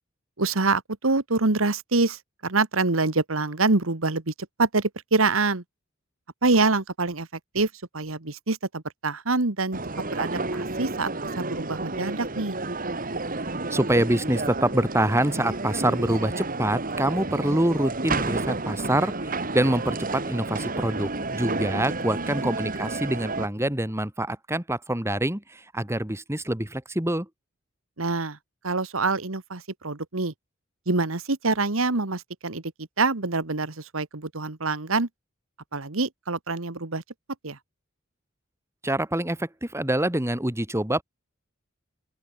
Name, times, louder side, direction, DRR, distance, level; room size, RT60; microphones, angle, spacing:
voice 1, 0.4-4.3 4.6-5.6 6.4-7.3 7.5-9.8 10.1-11.1 11.4-12.6 22.2-22.3 28.0-28.4 28.6-30.3 30.9-32.6 33.0-35.1 35.7-37.0 37.4-37.6, right 3 dB, 80° right, 1.7 m, -25 dB
sound 1, 9.7-23.5, right 2 dB, 45° right, 3.1 m, -31 dB
voice 2, 13.7-27.3 38.8-41.0, right 1 dB, 15° right, 2.1 m, -25 dB
open air
head